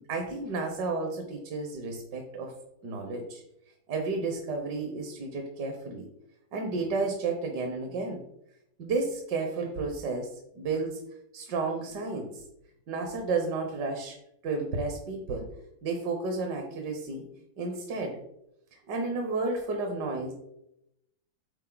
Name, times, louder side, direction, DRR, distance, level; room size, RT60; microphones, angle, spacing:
voice 1, 0.1-2.5 2.8-3.4 3.9-6.1 6.5-8.2 8.8-11.0 11.3-12.4 12.9-14.2 14.4-15.5 15.8-17.2 17.6-18.2 18.7-20.3, right 3 dB, 60° right, 3 dB, 1.5 m, -32 dB
8.9 x 4.1 x 3.9 m, 0.82 s
omnidirectional pair, 2.2 m